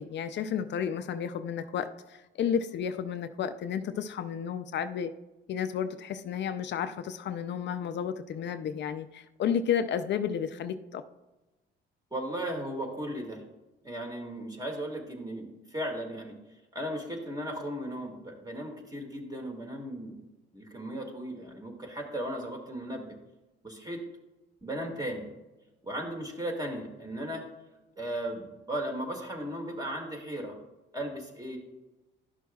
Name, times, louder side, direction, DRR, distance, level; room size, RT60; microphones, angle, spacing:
voice 1, 0.0-5.1 5.5-11.0, left 8 dB, 65° left, 10 dB, 0.5 m, -32 dB
voice 2, 12.1-13.4 13.8-16.4 16.7-20.2 20.5-23.2 23.6-24.0 24.6-25.3 25.8-27.4 28.0-30.6 30.9-31.6, right 1 dB, 20° right, 2 dB, 2.0 m, -36 dB
11.5 x 6.1 x 2.3 m, 1.1 s
cardioid pair, 90°, 20 cm